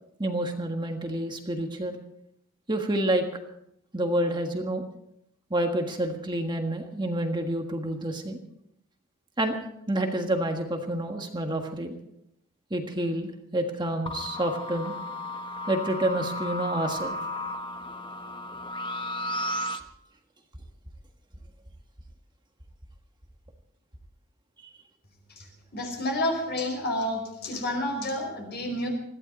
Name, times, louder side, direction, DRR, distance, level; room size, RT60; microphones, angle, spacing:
voice 1, 0.2-2.0 2.7-3.4 3.9-4.8 5.5-8.4 9.4-9.6 9.9-12.0 12.7-15.0 15.7-17.2, right 1 dB, 20° right, 3 dB, 1.5 m, -28 dB
sound 1, 14.1-19.8, left 1 dB, 20° left, 1.1 m, -34 dB
voice 2, 25.7-28.9, left 1 dB, 50° left, 3 dB, 5.2 m, -29 dB
21.0 x 15.0 x 4.2 m, 0.77 s
head